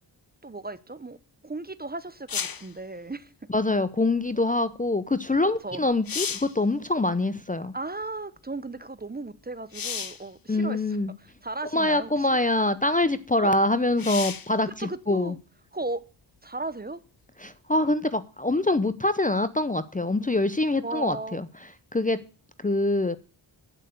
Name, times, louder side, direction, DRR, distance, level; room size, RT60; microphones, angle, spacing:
voice 1, 0.4-1.2 1.4-3.3 5.6-5.9 7.7-12.4 13.4-13.5 14.7-15.4 15.7-16.0 16.4-17.0 20.8-21.4, right 2 dB, 20° right, 0.8 m, -36 dB
sound 1, 2.3-2.7 5.4-5.5 5.9-6.6 9.7-10.3 11.3-11.4 14.0-14.5 18.1-18.2, left 7 dB, 50° left, 0.8 m, -32 dB
voice 2, 3.5-7.7 10.5-11.1 11.7-15.3 17.4-21.5 21.9-22.2 22.6-23.2, left 2 dB, 20° left, 0.6 m, -24 dB
9.0 x 8.0 x 6.5 m
wide cardioid pair, 65°, 44 cm